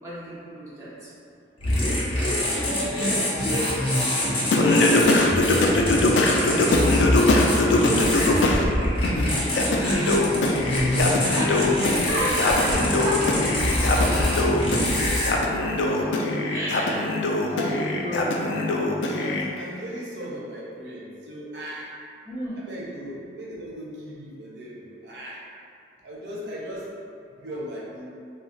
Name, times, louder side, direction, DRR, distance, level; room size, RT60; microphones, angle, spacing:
voice 1, 0.0-1.1 11.3-11.8 12.1-13.9 16.5-17.1 17.6-18.4 22.2-22.6 26.2-26.4, right 1 dB, 15° right, -10 dB, 0.6 m, -32 dB
sound 1, 1.6-15.3, left 1 dB, 30° left, 0.6 m, -25 dB
voice 2, 2.5-4.1 4.4-6.0 6.4-7.4 7.8-10.2 10.6-13.0 15.8-17.0 17.4-17.9 18.5-18.7 19.2-21.9 22.6-25.4 26.0-26.9 27.4-28.0, equal, 80° right, -5 dB, 0.5 m, -35 dB
Singing, 4.5-8.6 9.0-19.4, left 2 dB, 85° left, 0.3 m, -22 dB
2.3 x 2.1 x 3.8 m, 2.5 s
head